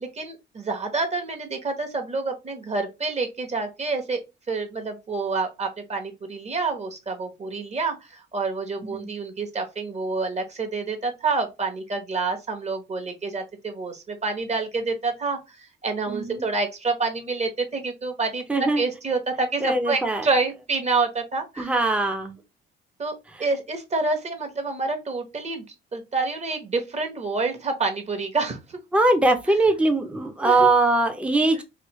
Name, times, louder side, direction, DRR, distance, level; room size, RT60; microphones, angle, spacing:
voice 1, 0.0-4.2 4.5-21.7 23.0-23.1 23.4-28.8 29.5-29.6 30.4-30.7, right 3 dB, 35° right, 1.0 m, -28 dB
voice 2, 16.1-16.5 18.5-18.8 19.6-20.2 21.6-22.3 28.9-31.6, right 2 dB, 5° right, 0.6 m, -21 dB
3.1 x 2.6 x 3.0 m
cardioid pair, 90°, 20 cm